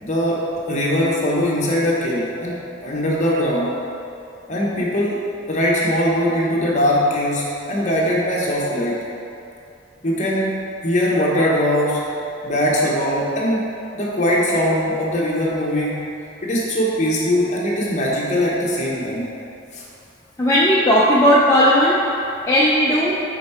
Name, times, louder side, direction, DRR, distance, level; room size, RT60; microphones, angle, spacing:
voice 1, 0.0-3.7 4.5-5.2 5.5-9.0 10.0-10.5 10.8-12.0 12.4-13.6 13.9-16.0 16.4-19.3 19.7-19.8, equal, 35° left, -5 dB, 1.0 m, -21 dB
voice 2, 20.4-22.0 22.5-23.1, equal, 15° left, -7 dB, 0.4 m, -15 dB
5.1 x 4.5 x 4.3 m, 2.7 s
head